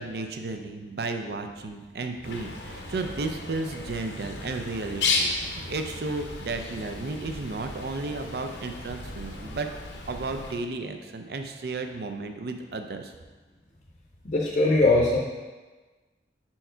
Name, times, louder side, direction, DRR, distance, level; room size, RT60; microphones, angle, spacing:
voice 1, 0.0-9.7 10.1-13.1, right 3 dB, 60° right, 6 dB, 0.5 m, -33 dB
Bird, 2.2-10.6, left 3 dB, 80° left, 0.8 m, -34 dB
voice 2, 14.2-15.2, left 2 dB, 45° left, -3 dB, 0.6 m, -20 dB
5.5 x 4.5 x 4.4 m, 1.3 s
head